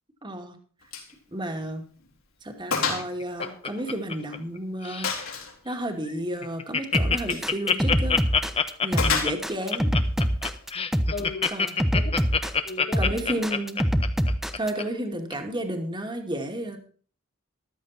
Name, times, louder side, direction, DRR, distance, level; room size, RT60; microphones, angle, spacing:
voice 1, 0.2-0.6 1.3-1.9 2.4-5.4 5.6-8.2 8.8-9.9 11.5-11.7 13.0-13.8 14.6-16.8, right 1 dB, 20° right, 4 dB, 2.4 m, -32 dB
Gunshot gunfire, 0.9-1.1 1.5-1.6 2.0-2.1 2.7-3.1 3.4-4.4 5.0-5.5 7.2-7.5 9.0-9.7, left 5 dB, 70° left, 3.9 m, -29 dB
Laughter, 2.8-4.6 4.8-5.2 5.7-5.8 6.0-6.1 6.4-14.8 15.3-15.4, left 6 dB, 25° left, 1.0 m, -26 dB
sound 1, 6.9-14.7, equal, ahead, 1.0 m, -25 dB
voice 2, 11.1-11.5 11.9-12.3 12.6-13.6 14.7-15.2, left 3 dB, 45° left, 5 dB, 2.8 m, -37 dB
14.0 x 13.0 x 4.3 m, 0.43 s
head